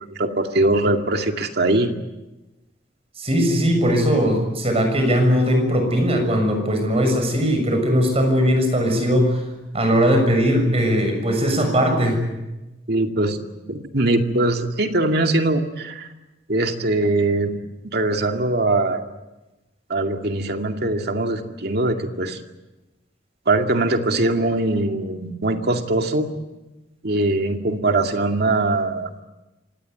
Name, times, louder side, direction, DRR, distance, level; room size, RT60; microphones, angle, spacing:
voice 1, 0.0-1.9 12.9-13.4 13.7-16.1 16.5-19.0 19.9-22.4 23.5-26.3 27.0-29.1, right 2 dB, 60° right, 4 dB, 2.3 m, -21 dB
voice 2, 3.2-9.3 9.7-12.2, equal, 35° right, 5 dB, 6.8 m, -19 dB
25.5 x 18.5 x 9.5 m, 1.1 s
head